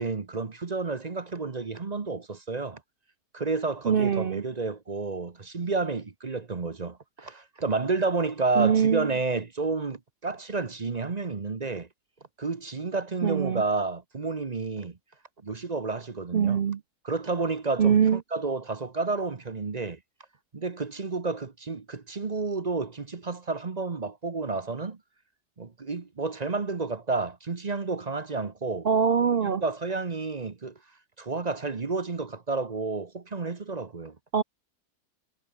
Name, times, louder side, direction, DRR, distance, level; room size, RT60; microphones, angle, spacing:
voice 1, 0.0-2.8 3.3-11.9 12.4-15.0 15.4-16.6 17.0-20.0 20.5-25.0 25.6-28.9 29.4-30.8 31.2-34.2, right 3 dB, 30° right, 0.8 m, -30 dB
voice 2, 3.8-4.4 8.6-9.1 13.2-13.6 16.3-16.8 17.8-18.2 28.8-29.6 34.3-34.4, right 7 dB, 60° right, 0.5 m, -23 dB
omnidirectional pair, 1.9 m